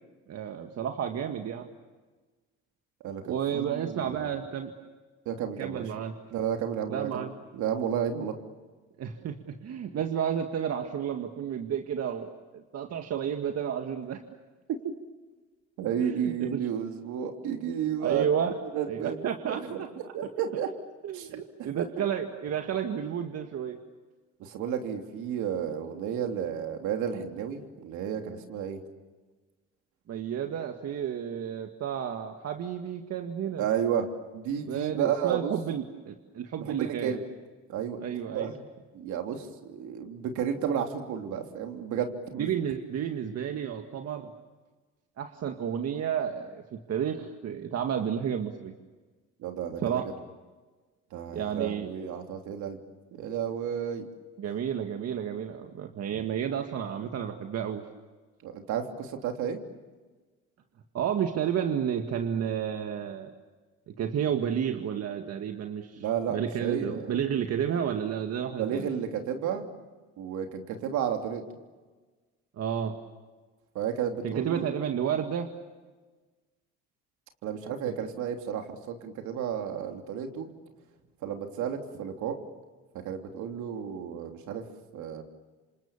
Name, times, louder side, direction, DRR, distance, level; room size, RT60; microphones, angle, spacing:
voice 1, 0.3-1.7 3.2-4.7 5.6-6.1 6.9-7.3 9.0-14.2 16.0-16.6 18.0-18.5 18.9-19.9 21.0-23.8 30.1-33.6 34.6-37.1 38.0-38.5 42.3-44.3 45.2-48.7 49.8-50.0 51.3-51.9 54.4-57.9 60.9-63.3 63.9-66.0 66.3-68.9 72.6-73.0 74.2-75.5 77.9-78.0, right 8 dB, 55° right, 5 dB, 1.9 m, -31 dB
voice 2, 3.0-4.3 5.2-5.8 6.3-7.3 7.5-8.3 15.8-18.3 18.7-19.9 20.1-20.7 21.1-21.3 21.6-21.9 24.4-28.8 33.6-34.1 34.3-35.5 36.6-37.3 37.7-38.0 38.3-38.6 38.9-42.5 49.4-50.0 51.1-52.8 53.1-54.0 58.4-59.6 66.0-67.1 68.6-69.7 70.2-71.4 73.7-74.7 77.4-80.5 81.2-82.4 83.0-84.6 84.9-85.2, right 8 dB, 70° right, 4 dB, 3.3 m, -32 dB
28.0 x 26.5 x 7.3 m, 1.3 s
supercardioid pair, 80°, 31 cm